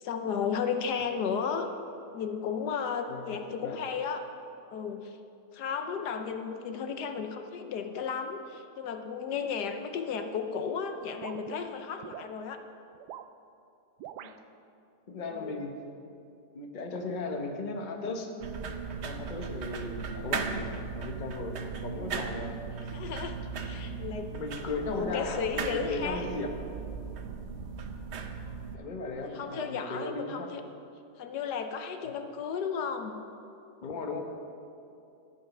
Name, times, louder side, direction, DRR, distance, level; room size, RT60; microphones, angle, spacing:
voice 1, 0.0-1.7 2.1-4.2 4.7-5.2 5.5-12.6 15.3-15.7 22.9-24.3 24.9-26.2 29.2-30.6 31.2-33.2, left 6 dB, 75° left, 7 dB, 1.3 m, -34 dB
voice 2, 3.1-3.8 14.2-14.3 15.1-15.7 16.5-18.3 19.0-20.7 20.9-22.6 24.3-25.4 25.7-26.5 28.7-30.5 33.8-34.2, left 3 dB, 30° left, 3 dB, 1.0 m, -36 dB
sound 1, 11.2-12.3 12.9-13.3 14.0-14.4, right 10 dB, 75° right, 1.1 m, -43 dB
sound 2, 18.4-28.8, right 5 dB, 55° right, 0.8 m, -37 dB
13.0 x 9.1 x 6.0 m, 2.6 s
omnidirectional pair, 1.8 m